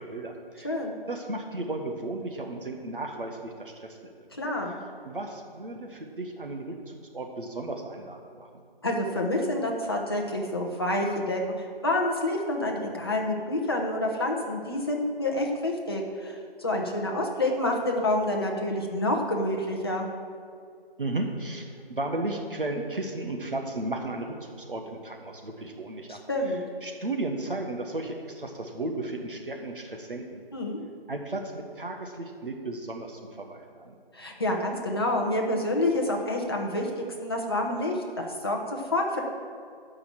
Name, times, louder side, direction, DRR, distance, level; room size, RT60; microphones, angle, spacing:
voice 1, 0.0-0.7 1.1-4.1 5.0-8.6 21.0-26.2 26.8-30.4 31.1-33.9, right 2 dB, 60° right, 3 dB, 1.4 m, -34 dB
voice 2, 0.6-0.9 4.4-4.8 8.8-20.1 26.1-26.6 30.5-30.8 34.1-39.2, left 1 dB, 25° left, 0 dB, 1.0 m, -28 dB
10.5 x 5.7 x 7.4 m, 2.2 s
figure-of-eight pair, 160°, 30 cm